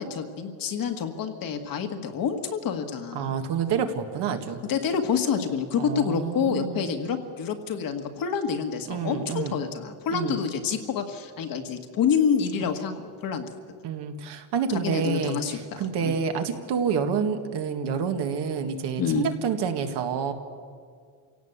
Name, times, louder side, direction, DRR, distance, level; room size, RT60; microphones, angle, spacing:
voice 1, 0.0-3.4 4.7-13.5 14.7-16.2 19.0-19.3, left 7 dB, 40° left, 5 dB, 1.8 m, -28 dB
voice 2, 3.1-4.6 5.8-6.9 8.9-9.6 10.1-10.4 13.8-20.3, right 6 dB, 50° right, 6 dB, 1.9 m, -28 dB
27.5 x 17.5 x 8.1 m, 2.1 s
cardioid pair, 170°, 50 cm